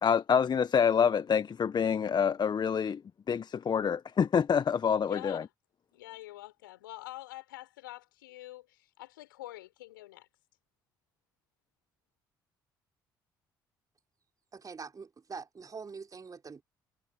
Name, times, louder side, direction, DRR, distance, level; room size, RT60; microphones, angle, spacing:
voice 1, 0.0-3.0 3.3-5.4, left 7 dB, 40° left, 1.4 m, -27 dB
voice 2, 5.1-5.5 5.9-10.3, left 16 dB, 80° left, 5.9 m, -46 dB
voice 3, 14.5-16.6, right 5 dB, 35° right, 3.7 m, -44 dB
figure-of-eight pair, 50°, 11 cm